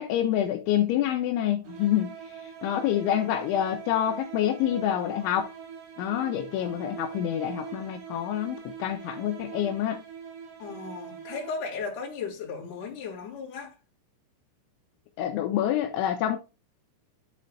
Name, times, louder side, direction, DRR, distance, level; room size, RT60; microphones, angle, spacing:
voice 1, 0.0-5.5 6.0-10.0 15.2-16.4, left 11 dB, 85° left, 3.0 m, -27 dB
sound 1, 1.6-11.9, right 7 dB, 85° right, 6.0 m, -43 dB
voice 2, 10.6-13.7, left 5 dB, 45° left, 3.3 m, -36 dB
11.0 x 4.2 x 3.7 m
omnidirectional pair, 5.7 m